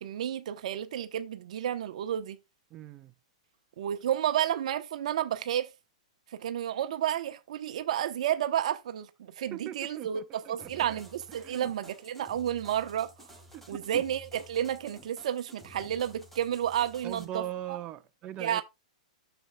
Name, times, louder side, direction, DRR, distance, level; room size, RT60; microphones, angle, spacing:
voice 1, 0.0-2.4 3.8-5.7 6.3-13.3 13.7-17.4 17.7-17.8 18.4-18.6, right 10 dB, 65° right, 0.8 m, -31 dB
voice 2, 2.7-3.1 9.5-11.0 11.4-11.7 13.5-14.0 17.0-18.6, right 12 dB, 30° right, 0.7 m, -41 dB
sound 1, 10.6-17.2, right 1 dB, 5° left, 2.3 m, -53 dB
10.0 x 6.9 x 2.2 m
hypercardioid pair, 130°, 4 cm